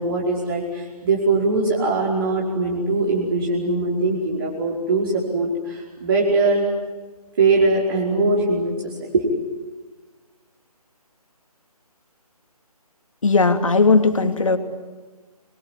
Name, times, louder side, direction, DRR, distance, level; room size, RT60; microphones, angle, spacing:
voice 1, 0.0-6.7 7.4-9.2, right 3 dB, 35° right, -4 dB, 5.0 m, -21 dB
voice 2, 13.2-14.6, left 4 dB, 55° left, 7 dB, 2.8 m, -17 dB
26.5 x 23.0 x 9.3 m, 1.3 s
figure-of-eight pair, 150°, 20 cm